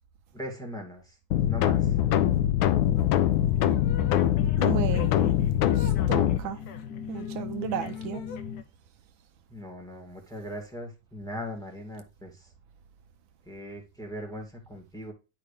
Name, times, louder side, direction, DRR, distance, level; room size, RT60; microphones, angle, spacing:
voice 1, 0.3-1.2 1.5-2.0 9.5-12.5 13.4-15.1, left 1 dB, ahead, 2.2 m, -39 dB
sound 1, 1.3-6.4, left 11 dB, 85° left, 1.5 m, -23 dB
sound 2, 3.0-8.6, left 7 dB, 60° left, 1.2 m, -39 dB
voice 2, 4.6-5.3 5.7-6.6 7.1-8.2, right 11 dB, 80° right, 1.4 m, -34 dB
10.5 x 4.8 x 3.4 m
omnidirectional pair, 2.2 m